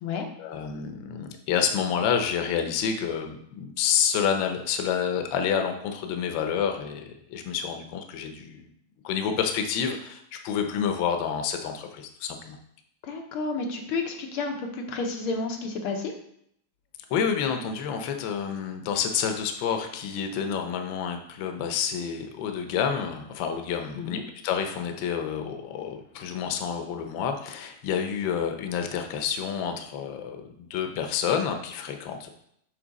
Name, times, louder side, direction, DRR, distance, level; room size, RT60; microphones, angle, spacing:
voice 1, 0.4-8.7 9.0-12.6 17.1-32.3, left 7 dB, 70° left, 5 dB, 1.4 m, -29 dB
voice 2, 13.0-16.1 24.0-24.2, left 4 dB, 90° left, 3 dB, 1.9 m, -31 dB
6.2 x 5.6 x 4.0 m, 0.70 s
omnidirectional pair, 2.3 m